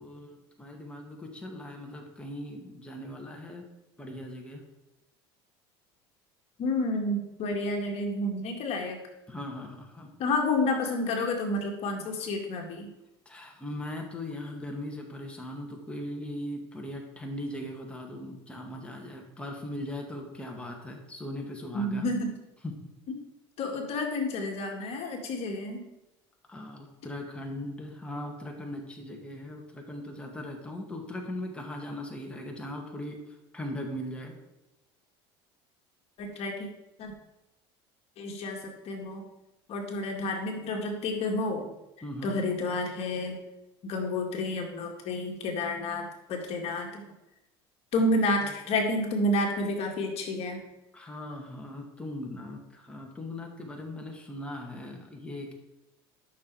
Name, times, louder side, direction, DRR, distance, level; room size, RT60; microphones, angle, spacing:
voice 1, 0.0-3.7 4.0-4.6 9.3-10.1 13.3-22.1 22.6-22.7 26.5-34.3 42.0-42.3 48.4-48.5 50.9-55.5, left 1 dB, 10° left, 0 dB, 2.2 m, -39 dB
voice 2, 6.6-9.0 10.2-12.9 21.7-22.4 23.6-25.8 36.2-36.7 37.0-37.1 38.2-39.3 39.7-41.7 42.2-43.4 43.8-47.0 47.9-50.6, left 2 dB, 55° left, 3 dB, 2.0 m, -30 dB
13.0 x 6.2 x 4.8 m, 0.94 s
supercardioid pair, 100°, 12 cm